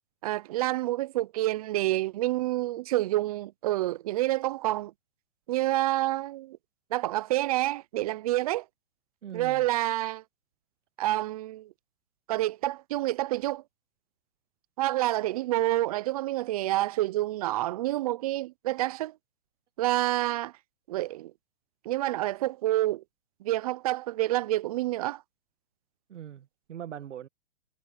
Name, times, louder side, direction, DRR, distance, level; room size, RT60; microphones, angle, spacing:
voice 1, 0.2-4.9 5.5-6.6 6.9-8.6 9.3-10.2 11.0-11.7 12.3-13.6 14.8-19.1 19.8-20.5 20.9-21.3 21.9-23.0 23.4-25.2, right 16 dB, 35° right, 0.4 m, -28 dB
voice 2, 9.2-9.7 26.1-27.3, right 10 dB, 90° right, 1.2 m, -41 dB
hypercardioid pair, 150°, 36 cm